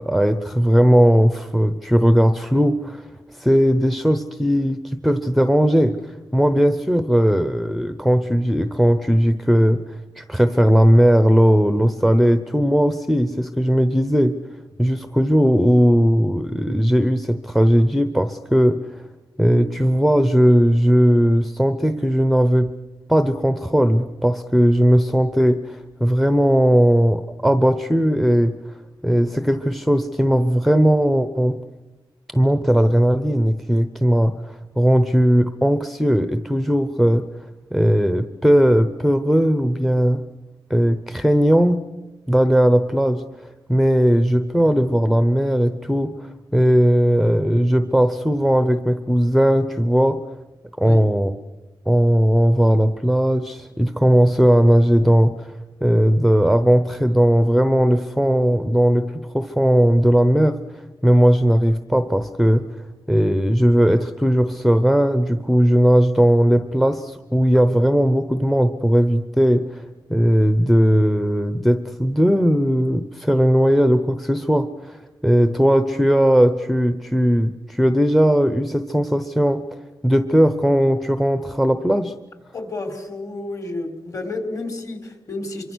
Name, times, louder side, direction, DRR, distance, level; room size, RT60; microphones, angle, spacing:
voice 1, 0.0-3.0 3.3-6.0 6.3-14.3 14.8-19.0 19.4-22.7 23.1-28.5 29.0-31.6 32.3-37.2 37.7-40.2 40.7-41.8 42.3-50.2 50.8-51.3 51.9-62.6 63.1-79.6 80.0-82.1, equal, ahead, 10 dB, 0.8 m, -18 dB
voice 2, 82.5-85.7, left 2 dB, 40° left, 6 dB, 3.9 m, -31 dB
26.0 x 24.5 x 6.3 m, 1.1 s
wide cardioid pair, 140°, 9 cm